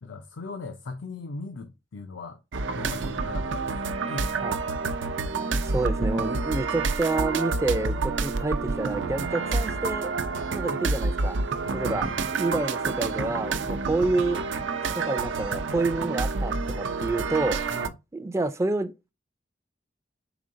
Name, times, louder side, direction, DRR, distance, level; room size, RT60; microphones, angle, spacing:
voice 1, 0.0-2.4 2.7-4.5 11.7-12.4 17.7-17.9, left 3 dB, 85° left, 0.5 m, -39 dB
sound 1, 2.5-17.9, right 4 dB, 85° right, 0.5 m, -28 dB
voice 2, 5.6-10.1 10.5-11.4 11.7-12.1 12.4-14.4 14.9-17.6 18.1-19.1, right 2 dB, 15° right, 0.4 m, -28 dB
5.0 x 3.7 x 2.5 m
head